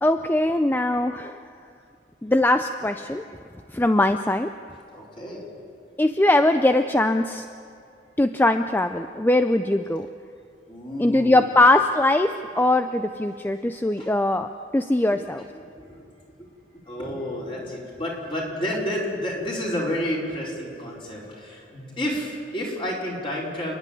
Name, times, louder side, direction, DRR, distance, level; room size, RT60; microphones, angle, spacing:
voice 1, 0.0-1.4 2.2-3.2 3.7-4.5 6.0-7.4 8.2-10.1 11.0-15.4, left 1 dB, 10° left, 8 dB, 0.4 m, -21 dB
voice 2, 4.9-5.6 10.7-11.5 14.0-14.1 15.1-16.1 16.4-23.7, equal, 30° left, -4 dB, 4.6 m, -31 dB
29.0 x 10.5 x 9.3 m, 2.4 s
head